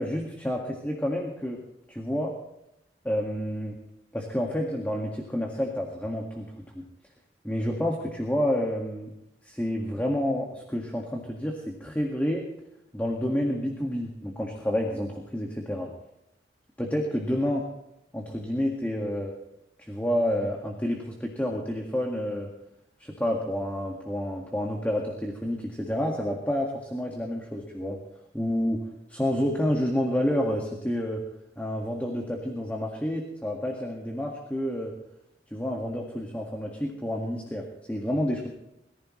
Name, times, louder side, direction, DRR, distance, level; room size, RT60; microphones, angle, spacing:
voice 1, 0.0-1.6 1.9-2.3 3.0-3.8 4.1-6.5 7.4-9.1 9.4-12.4 12.9-15.9 16.8-17.6 18.1-19.3 19.8-22.5 23.0-28.0 28.3-31.2 31.6-34.9 35.5-38.5, equal, 10° left, 0 dB, 1.8 m, -29 dB
22.0 x 15.0 x 3.2 m, 0.85 s
head